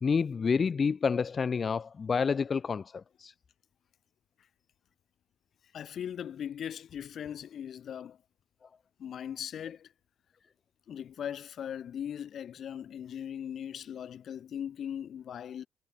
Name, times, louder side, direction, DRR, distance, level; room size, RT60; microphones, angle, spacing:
voice 1, 0.0-2.8 3.2-3.3, left 5 dB, 35° left, 1.3 m, -28 dB
voice 2, 5.7-8.2 9.0-9.9 10.9-15.7, left 9 dB, 50° left, 2.2 m, -39 dB
cardioid pair, 110°, 0 cm